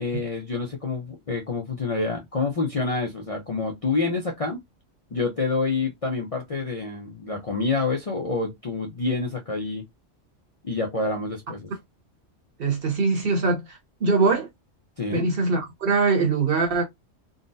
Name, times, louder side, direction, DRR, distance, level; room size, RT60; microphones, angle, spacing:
voice 1, 0.0-4.6 5.1-9.8 10.6-11.7 15.0-15.3, left 3 dB, 40° left, 0.5 m, -27 dB
voice 2, 12.6-14.5 15.1-16.8, right 4 dB, 50° right, 1.1 m, -22 dB
3.8 x 2.0 x 2.6 m
omnidirectional pair, 1.3 m